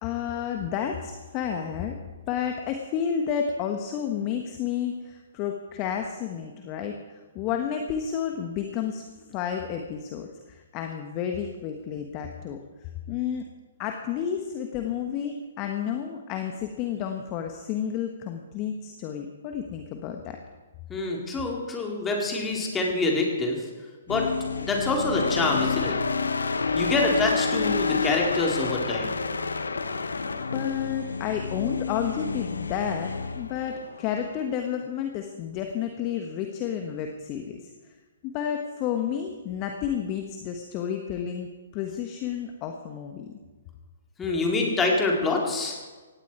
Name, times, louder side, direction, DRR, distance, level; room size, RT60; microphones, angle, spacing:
voice 1, 0.0-2.0 2.3-12.6 13.1-13.5 13.8-20.4 30.5-37.6 38.2-43.4, left 8 dB, 30° left, 4 dB, 1.4 m, -31 dB
voice 2, 20.9-23.7 24.1-24.3 24.6-26.0 26.7-29.2 44.2-45.8, left 3 dB, 15° left, 0 dB, 3.8 m, -26 dB
sound 1, 24.1-34.4, left 4 dB, 75° left, 1.2 m, -29 dB
18.5 x 16.0 x 4.7 m, 1.3 s
figure-of-eight pair, 125°, 0 cm